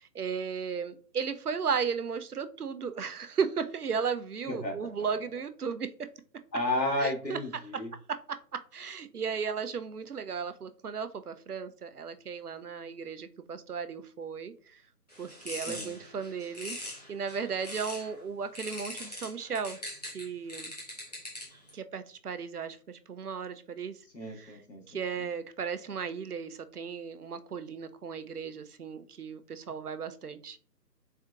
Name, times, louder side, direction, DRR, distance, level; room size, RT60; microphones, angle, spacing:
voice 1, 0.0-5.9 7.0-7.4 8.1-14.8 15.2-19.8 20.1-20.7 21.7-24.0 24.3-24.5 24.9-30.6, right 6 dB, 65° right, 10 dB, 0.6 m, -35 dB
voice 2, 4.5-4.9 6.5-7.9 15.7-15.9 24.1-25.0, left 1 dB, 90° left, 1 dB, 1.7 m, -32 dB
sound 1, 15.1-18.1 18.6-21.7, left 1 dB, 25° left, 1.0 m, -42 dB
4.3 x 3.7 x 2.3 m, 0.42 s
figure-of-eight pair, 160°, 49 cm